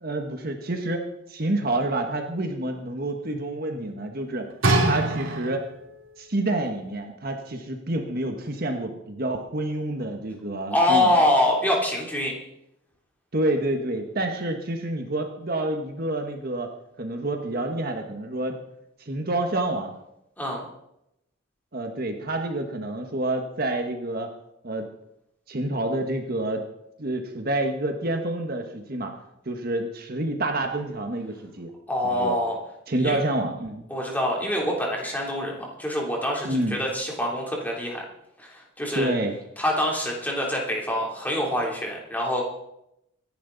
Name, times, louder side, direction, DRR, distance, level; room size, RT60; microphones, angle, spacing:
voice 1, 0.0-4.5 4.8-5.6 6.2-11.2 13.3-16.7 17.0-18.5 19.0-19.9 21.7-24.3 24.6-24.9 25.5-26.6 27.0-29.1 29.4-31.7 32.0-32.4 32.9-33.8 36.4-36.8 38.9-39.4, right 1 dB, 45° right, 4 dB, 1.4 m, -28 dB
sound 1, 4.6-5.9 6.7-6.8, right 2 dB, 80° right, 2.9 m, -23 dB
voice 2, 10.7-12.4 20.4-20.7 31.9-32.6 33.0-33.2 33.9-38.0 38.4-39.1 39.6-42.4, left 1 dB, 10° left, -2 dB, 3.3 m, -25 dB
24.5 x 11.0 x 4.0 m, 0.82 s
head